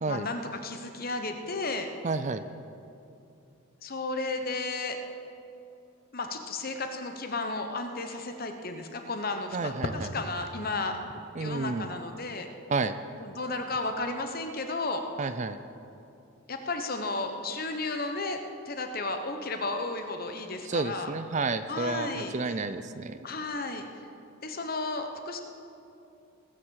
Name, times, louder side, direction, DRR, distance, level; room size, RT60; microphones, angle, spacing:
voice 1, 0.1-1.9 3.8-5.0 6.1-11.0 11.4-12.5 13.2-15.0 16.5-18.4 18.7-21.1 21.7-22.3 23.2-23.9 24.4-25.4, left 3 dB, 45° left, 6 dB, 1.0 m, -33 dB
voice 2, 2.0-2.4 9.5-9.9 11.4-11.9 12.7-13.0 15.2-15.6 20.7-23.2, right 3 dB, 35° right, 11 dB, 0.4 m, -30 dB
20.0 x 7.5 x 6.4 m, 2.7 s
head